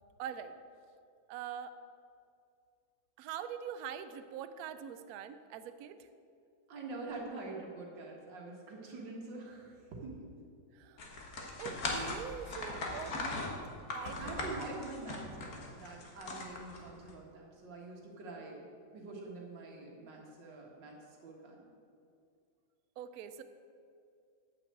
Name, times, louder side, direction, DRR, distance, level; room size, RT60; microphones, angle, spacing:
voice 1, 0.2-0.5 1.3-1.8 3.2-6.1 10.7-11.0 11.6-13.5 13.9-14.5 23.0-23.4, right 8 dB, 85° right, 10 dB, 0.8 m, -43 dB
voice 2, 6.7-10.3 12.9-13.1 14.2-18.6 18.9-20.9 21.2-21.7, right 3 dB, 65° right, -1 dB, 2.2 m, -45 dB
sound 1, 11.0-17.1, left 2 dB, 50° left, 1.6 m, -39 dB
8.8 x 5.9 x 7.8 m, 2.4 s
omnidirectional pair, 2.2 m